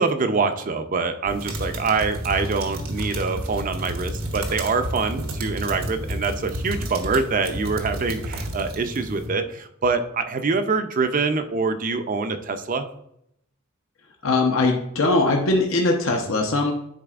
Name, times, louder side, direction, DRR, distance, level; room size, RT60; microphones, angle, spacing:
voice 1, 0.0-12.9 16.1-16.2, right 4 dB, 40° right, 9 dB, 0.5 m, -25 dB
sound 1, 1.3-9.3, right 1 dB, 80° right, 1.1 m, -31 dB
voice 2, 14.2-16.7, left 2 dB, 70° left, 1 dB, 0.7 m, -21 dB
10.0 x 4.1 x 2.4 m, 0.77 s
head